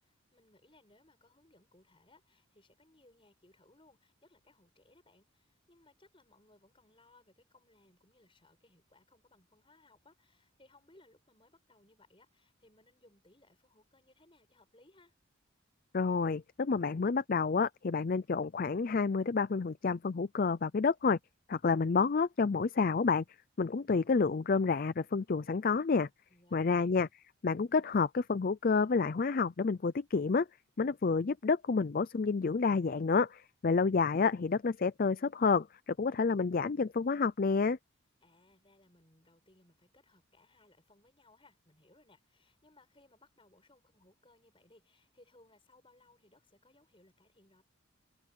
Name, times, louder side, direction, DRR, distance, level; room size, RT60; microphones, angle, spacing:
voice 1, 0.3-15.1 26.3-26.9 38.2-47.6, left 2 dB, 25° left, 6.2 m, -65 dB
voice 2, 15.9-21.2 21.5-23.2 23.6-26.1 26.5-27.1 27.4-30.5 30.8-37.8, left 4 dB, 45° left, 0.4 m, -29 dB
head